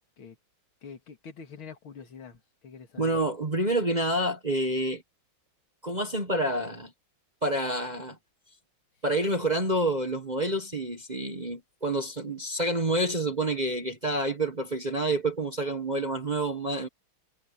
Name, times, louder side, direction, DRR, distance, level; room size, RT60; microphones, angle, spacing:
voice 1, 0.8-3.2, left 6 dB, 90° left, 2.8 m, -45 dB
voice 2, 3.0-5.0 5.8-6.9 7.4-8.2 9.0-16.9, right 1 dB, 25° right, 1.3 m, -28 dB
omnidirectional pair, 2.2 m